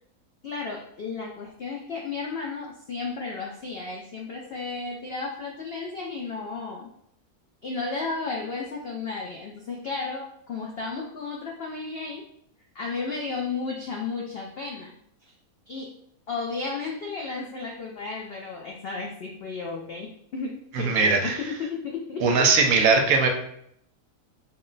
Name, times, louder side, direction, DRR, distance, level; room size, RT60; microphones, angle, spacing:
voice 1, 0.4-6.9 7.6-12.2 12.7-14.9 15.7-15.9 16.3-22.5, left 4 dB, 75° left, -1 dB, 0.5 m, -33 dB
voice 2, 20.7-21.4 22.2-23.3, right 4 dB, 70° right, 4 dB, 1.0 m, -20 dB
4.1 x 2.1 x 3.8 m, 0.71 s
omnidirectional pair, 1.7 m